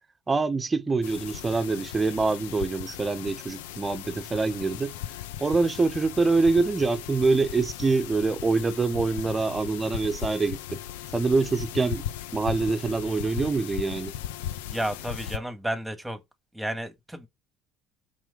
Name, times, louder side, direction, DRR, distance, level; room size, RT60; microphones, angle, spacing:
voice 1, 0.3-4.9 5.4-10.8 11.1-12.0 12.3-14.1, right 3 dB, 25° right, 1.2 m, -25 dB
sound 1, 1.0-15.4, left 11 dB, 75° left, 0.6 m, -37 dB
voice 2, 14.7-16.2 16.5-17.3, right 1 dB, 5° right, 2.1 m, -32 dB
6.0 x 4.9 x 5.2 m
hypercardioid pair, 65°, 0 cm